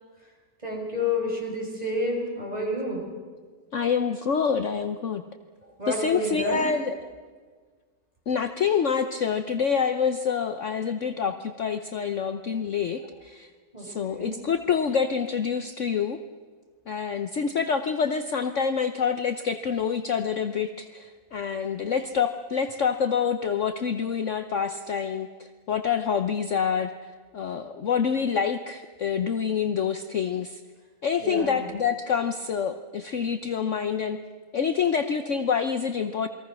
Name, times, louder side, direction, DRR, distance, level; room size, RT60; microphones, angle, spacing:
voice 1, 0.6-3.1 5.8-6.6 13.7-14.3 31.2-31.7, left 1 dB, 20° right, -1 dB, 5.5 m, -30 dB
voice 2, 3.7-5.2 5.9-7.1 8.3-13.5 13.8-16.2 16.9-26.9 27.3-30.6 31.0-34.2 34.5-36.3, left 6 dB, 55° left, 8 dB, 1.1 m, -27 dB
28.0 x 22.0 x 6.2 m, 1.5 s
omnidirectional pair, 1.8 m